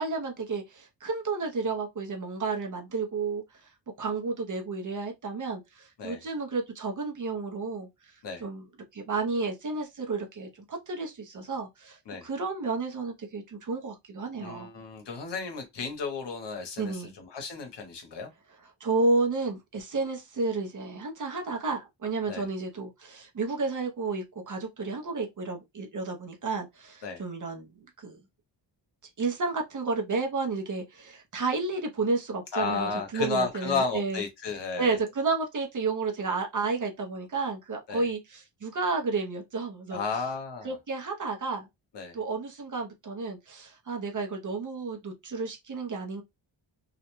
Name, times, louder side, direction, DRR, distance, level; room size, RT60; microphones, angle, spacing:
voice 1, 0.0-3.4 4.0-7.9 8.4-8.6 8.9-12.0 12.2-14.7 16.8-17.1 18.8-27.7 28.0-28.2 29.2-34.2 34.8-40.0 40.6-41.7 42.1-46.2, right 3 dB, 45° right, 0.6 m, -31 dB
voice 2, 14.4-18.3 22.3-22.5 27.0-27.2 32.5-35.0 37.9-38.1 39.9-40.8 41.9-42.2, left 4 dB, 65° left, 0.9 m, -33 dB
2.4 x 2.1 x 2.9 m
wide cardioid pair, 175°, 45 cm